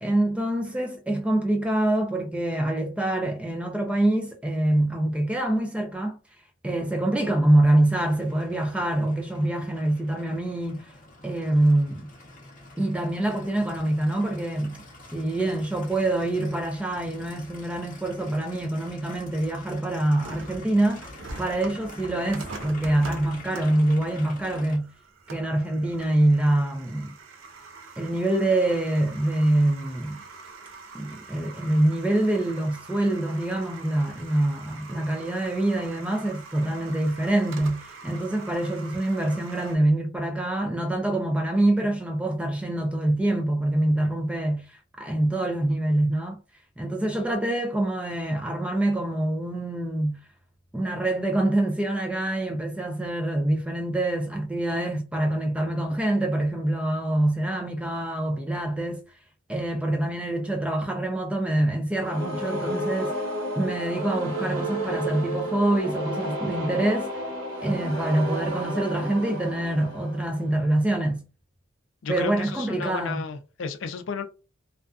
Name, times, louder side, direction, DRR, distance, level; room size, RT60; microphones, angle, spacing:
voice 1, 0.0-6.2 6.6-10.9 11.2-12.1 12.8-14.8 15.1-21.1 21.4-24.9 25.3-27.1 28.0-30.2 30.9-46.4 46.8-50.2 50.7-59.0 59.5-63.1 63.6-67.2 67.6-71.2 72.1-73.2, right 1 dB, 5° right, 0.3 m, -25 dB
Aircraft, 8.1-24.8, left 2 dB, 40° left, 0.7 m, -46 dB
sound 1, 20.2-39.8, right 3 dB, 75° right, 0.5 m, -44 dB
sound 2, 61.9-70.8, right 1 dB, 60° right, 1.0 m, -32 dB
voice 2, 72.0-74.2, left 5 dB, 70° left, 0.4 m, -33 dB
2.4 x 2.4 x 2.3 m
head